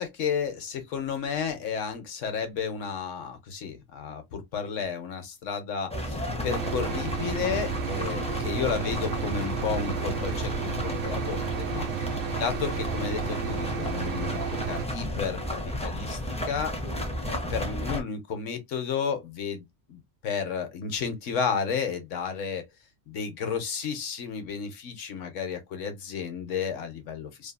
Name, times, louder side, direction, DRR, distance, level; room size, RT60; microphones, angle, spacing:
voice 1, 0.0-11.9 12.4-15.4 15.6-16.2 16.5-16.7 17.3-22.6 23.1-27.5, left 6 dB, 80° left, 1.1 m, -32 dB
sound 1, 5.9-18.0, left 1 dB, 10° left, 0.3 m, -33 dB
sound 2, 6.5-14.9, right 10 dB, 85° right, 1.0 m, -33 dB
2.7 x 2.6 x 2.2 m
omnidirectional pair, 1.3 m